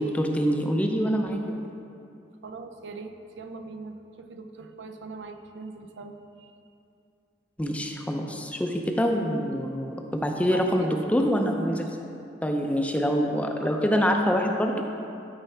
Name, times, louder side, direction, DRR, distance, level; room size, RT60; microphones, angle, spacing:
voice 1, 0.0-1.6 7.6-11.9 12.4-14.8, equal, 10° left, 2 dB, 0.5 m, -25 dB
voice 2, 2.4-6.5 10.4-11.0 11.7-11.8 13.0-13.2, right 3 dB, 85° right, 6 dB, 0.5 m, -41 dB
12.5 x 4.6 x 3.4 m, 2.6 s
head